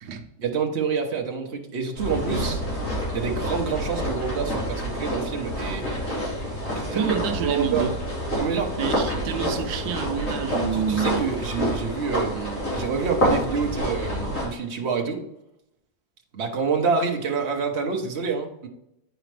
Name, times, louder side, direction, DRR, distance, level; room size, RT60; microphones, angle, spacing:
voice 1, 0.4-2.6 3.1-5.8 6.7-7.9 8.4-8.8 10.7-15.2 16.3-18.7, right 5 dB, 45° right, 2 dB, 1.3 m, -27 dB
sound 1, 2.0-14.5, equal, 55° left, 3.4 m, -28 dB
voice 2, 6.9-7.9 8.8-11.2, right 7 dB, 85° right, 7 dB, 1.3 m, -28 dB
9.2 x 4.9 x 3.3 m, 0.83 s
omnidirectional pair, 1.7 m